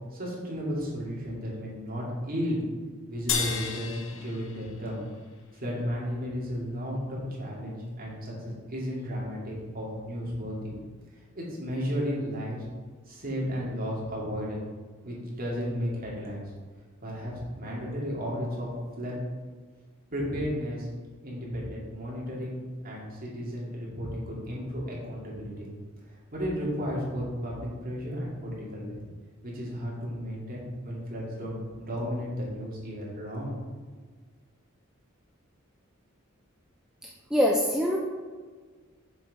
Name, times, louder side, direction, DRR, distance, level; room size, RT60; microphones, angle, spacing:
voice 1, 0.1-2.6 3.1-5.0 5.5-10.7 11.3-12.6 13.1-14.6 15.0-16.4 17.0-18.7 19.0-19.2 20.1-20.9 21.2-25.7 26.3-29.0 29.4-33.6, equal, 45° right, -5 dB, 2.4 m, -33 dB
sound 1, 3.3-5.9, left 6 dB, 65° left, 1.0 m, -34 dB
voice 2, 37.0-38.0, equal, 5° right, -2 dB, 0.6 m, -25 dB
6.8 x 6.0 x 4.8 m, 1.5 s
head